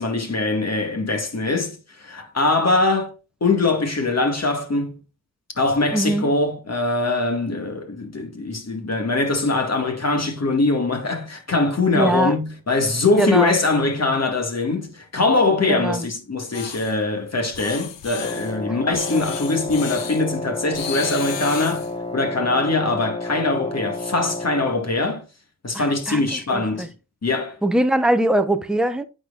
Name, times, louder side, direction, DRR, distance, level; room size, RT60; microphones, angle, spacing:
voice 1, 0.0-3.1 3.4-5.0 5.6-21.9 22.1-25.2 25.6-26.9 27.2-27.6, left 3 dB, 35° left, 2.1 m, -22 dB
voice 2, 5.9-6.3 11.9-12.3 13.2-13.6 15.7-16.0 18.9-19.2 25.7-26.2 26.5-26.9 27.6-29.0, right 1 dB, ahead, 0.9 m, -22 dB
sound 1, 16.5-16.9 17.5-18.5 18.9-20.2 20.7-21.9, left 8 dB, 80° left, 1.1 m, -34 dB
Wind instrument woodwind instrument, 18.2-24.8, left 2 dB, 15° left, 1.3 m, -31 dB
9.1 x 4.4 x 2.5 m
cardioid pair, 65°, 43 cm